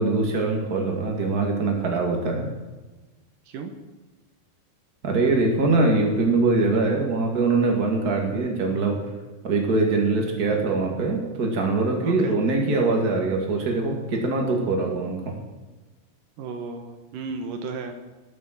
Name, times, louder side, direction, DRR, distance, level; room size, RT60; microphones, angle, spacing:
voice 1, 0.0-2.5 5.0-9.0 9.4-15.3, right 3 dB, 45° right, 1 dB, 1.2 m, -23 dB
voice 2, 12.0-12.4 16.4-17.9, right 4 dB, 70° right, 6 dB, 2.3 m, -34 dB
19.0 x 6.4 x 7.4 m, 1.2 s
omnidirectional pair, 5.0 m